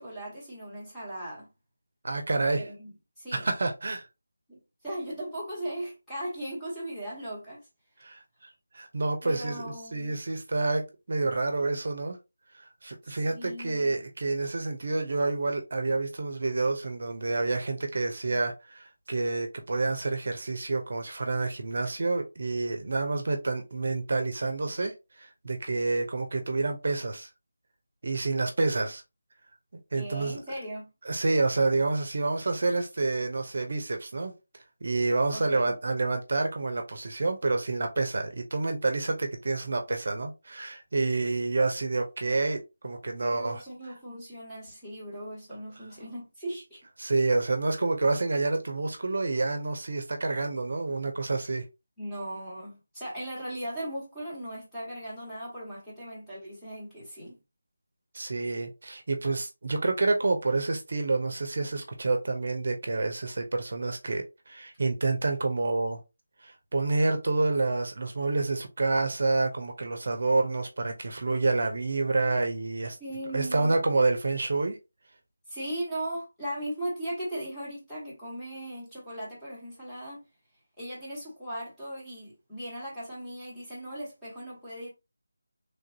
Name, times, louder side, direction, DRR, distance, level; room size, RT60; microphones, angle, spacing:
voice 1, 0.0-1.5 2.6-2.9 3.2-3.5 4.5-7.6 9.2-10.1 13.0-14.0 29.9-30.9 35.3-35.7 43.2-46.8 52.0-57.4 73.0-73.8 75.5-80.2 80.8-84.9, right 1 dB, 5° left, 1.3 m, -38 dB
voice 2, 2.0-2.7 3.3-4.0 8.0-10.8 11.1-12.2 12.6-27.3 28.0-29.0 29.9-30.4 31.0-34.3 34.8-43.6 47.0-51.6 58.1-66.0 66.4-73.0 73.3-74.8, right 3 dB, 55° right, 0.7 m, -28 dB
3.3 x 2.5 x 2.8 m
figure-of-eight pair, 170°, 0 cm